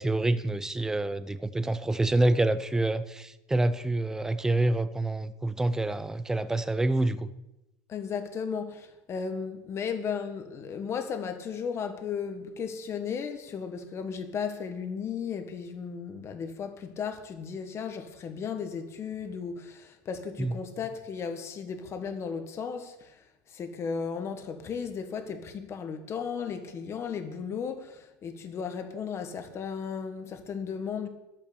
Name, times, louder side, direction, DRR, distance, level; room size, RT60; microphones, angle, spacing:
voice 1, 0.0-7.3 20.4-20.5, right 2 dB, 5° right, 0.5 m, -27 dB
voice 2, 7.9-23.2 23.5-31.1, left 6 dB, 25° left, 1.4 m, -35 dB
11.5 x 8.7 x 6.8 m
supercardioid pair, 160°, 11 cm